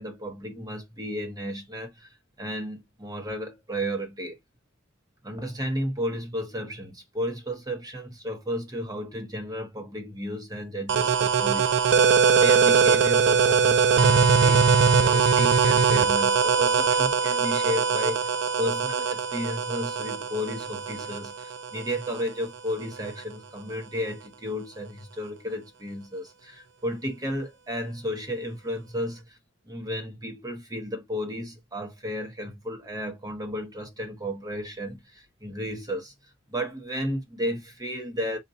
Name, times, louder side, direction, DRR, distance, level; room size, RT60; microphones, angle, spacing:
voice 1, 0.0-2.1 2.4-4.4 5.2-29.4 29.7-36.1 36.5-38.4, equal, 20° right, 1.0 m, -33 dB
sound 1, 10.9-22.3, right 5 dB, 55° right, 0.4 m, -21 dB
4.1 x 2.4 x 2.6 m
head